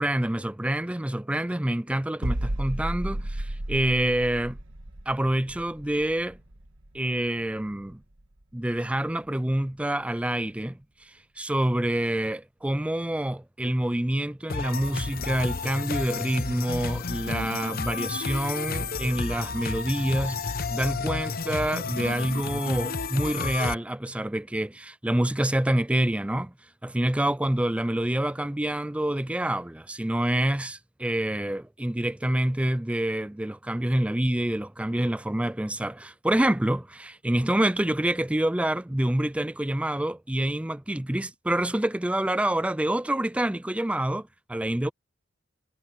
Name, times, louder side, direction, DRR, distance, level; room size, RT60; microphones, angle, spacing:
voice 1, 0.0-4.6 5.1-6.4 6.9-8.0 8.5-10.8 11.4-26.5 26.8-44.9, right 1 dB, 5° right, 0.4 m, -27 dB
sound 1, 2.2-7.9 8.2-8.4, right 1 dB, 75° right, 1.6 m, -33 dB
sound 2, 14.5-23.8, left 4 dB, 50° left, 0.9 m, -31 dB
head